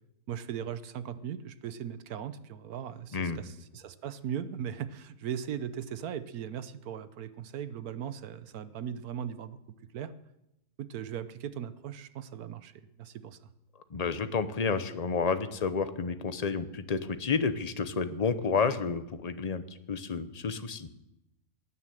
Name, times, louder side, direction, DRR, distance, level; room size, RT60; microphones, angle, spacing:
voice 1, 0.3-9.6 9.9-10.1 10.8-13.4, right 9 dB, 70° right, 13 dB, 1.3 m, -38 dB
voice 2, 13.9-20.9, left 5 dB, 35° left, 11 dB, 0.7 m, -30 dB
18.0 x 10.0 x 7.7 m, 0.90 s
omnidirectional pair, 1.6 m